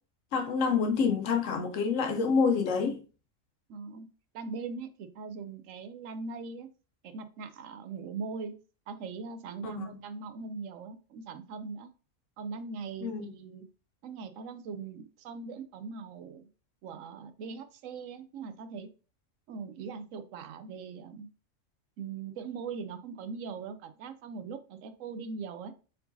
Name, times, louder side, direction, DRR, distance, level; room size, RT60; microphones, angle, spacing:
voice 1, 0.3-3.0 9.6-9.9 13.0-13.2, left 5 dB, 75° left, 1.0 m, -27 dB
voice 2, 3.7-4.1 4.3-6.7 7.0-8.5 8.9-11.9 12.4-13.6 14.0-16.5 16.8-18.9 19.5-21.3 22.0-25.7, right 5 dB, 90° right, 1.0 m, -40 dB
4.5 x 3.9 x 2.6 m
omnidirectional pair, 1.3 m